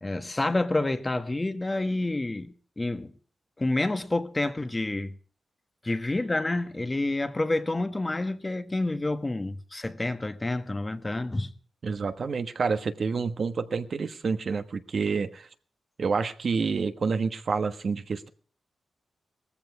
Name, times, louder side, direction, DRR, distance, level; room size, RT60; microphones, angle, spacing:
voice 1, 0.0-3.1 3.6-5.2 5.8-11.5, left 2 dB, 25° left, 1.4 m, -28 dB
voice 2, 11.8-15.5 16.0-18.3, right 5 dB, 60° right, 1.3 m, -28 dB
17.5 x 14.5 x 4.8 m
cardioid pair, 65°, 0 cm